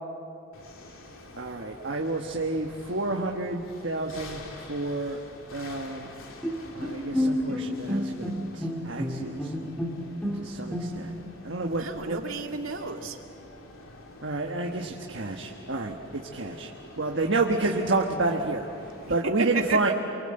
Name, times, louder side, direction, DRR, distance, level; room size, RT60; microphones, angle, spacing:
sound 1, 0.5-19.2, left 2 dB, 90° left, 3.2 m, -47 dB
voice 1, 1.4-4.4 4.7-5.2 5.5-6.1 6.7-9.5 10.3-11.1 11.4-12.2 14.2-15.9 16.3-16.7 17.0-18.7 19.1-19.9, right 2 dB, 60° right, 1 dB, 1.4 m, -29 dB
Bowed string instrument, 6.4-11.3, left 1 dB, 5° left, 1.9 m, -30 dB
voice 2, 11.6-13.2 19.2-19.9, right 4 dB, 85° right, 3 dB, 2.2 m, -32 dB
28.5 x 23.5 x 7.8 m, 2.5 s
head